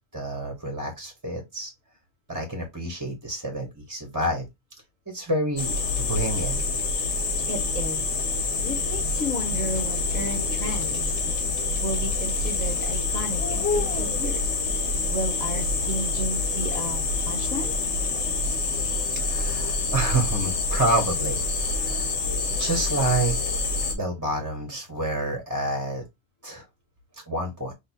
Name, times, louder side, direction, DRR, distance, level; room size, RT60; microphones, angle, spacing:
voice 1, 0.1-1.7 2.3-4.5 5.1-6.6 19.2-22.1 22.6-23.3 23.9-26.0 26.4-26.6 27.3-27.7, right 1 dB, 15° right, 1.1 m, -28 dB
sound 1, 5.6-23.9, left 3 dB, 75° left, 1.5 m, -26 dB
voice 2, 7.5-8.0 8.3-11.1 11.8-17.8, equal, 5° left, 1.3 m, -33 dB
6.2 x 2.5 x 2.8 m
omnidirectional pair, 1.2 m